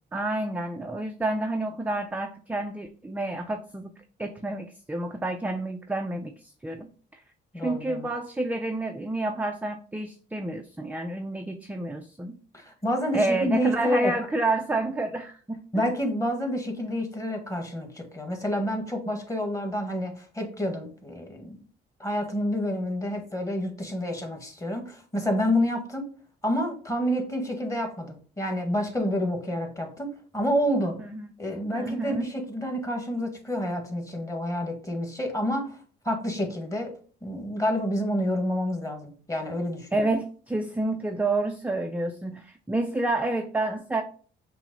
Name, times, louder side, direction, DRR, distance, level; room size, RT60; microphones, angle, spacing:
voice 1, 0.1-3.9 4.2-7.2 7.6-12.4 13.1-15.6 31.0-31.3 31.7-32.3 39.9-44.0, right 2 dB, 5° right, 5 dB, 0.4 m, -29 dB
voice 2, 7.5-8.1 12.5-14.1 15.7-21.6 22.0-26.0 26.4-31.0 31.4-35.8 36.0-36.9 37.2-40.1, equal, 15° left, 3 dB, 1.4 m, -28 dB
5.8 x 2.1 x 3.8 m, 0.41 s
cardioid pair, 90°, 20 cm